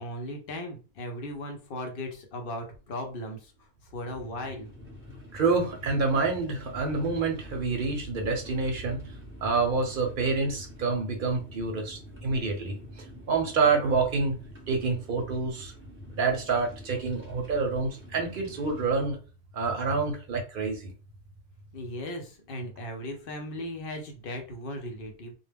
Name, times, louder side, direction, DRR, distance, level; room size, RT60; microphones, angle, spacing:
voice 1, 0.0-4.7 21.7-25.4, left 1 dB, 65° left, 3 dB, 0.7 m, -37 dB
sound 1, 4.0-19.1, equal, 15° right, 0.8 m, -46 dB
voice 2, 5.3-9.0 9.4-14.4 14.7-15.7 16.1-19.2 19.5-20.9, right 4 dB, 60° right, 3 dB, 0.7 m, -27 dB
2.1 x 2.0 x 3.3 m, 0.35 s
omnidirectional pair, 1.1 m